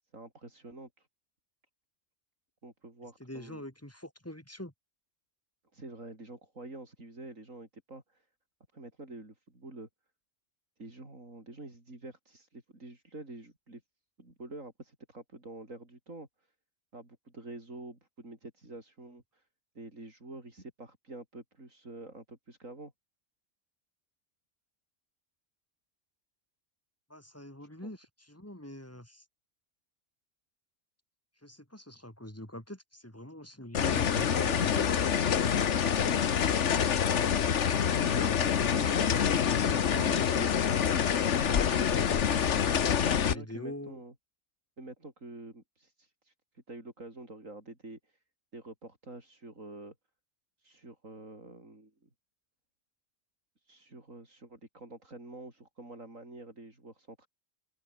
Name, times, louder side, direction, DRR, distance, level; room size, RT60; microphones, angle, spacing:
voice 1, 0.1-1.1 2.6-3.6 5.7-8.3 8.7-9.9 10.8-13.8 14.2-16.5 16.9-19.5 19.7-22.9 27.8-27.9 37.6-38.9 42.9-44.1 44.8-48.2 48.5-49.9 50.6-51.9 53.6-57.3, right 2 dB, 85° right, 6.0 m, -47 dB
voice 2, 3.2-4.7 27.1-29.2 31.4-35.6 42.9-44.0, left 1 dB, 10° left, 4.3 m, -44 dB
sound 1, 33.7-43.4, left 8 dB, 65° left, 1.4 m, -26 dB
open air
omnidirectional pair, 1.3 m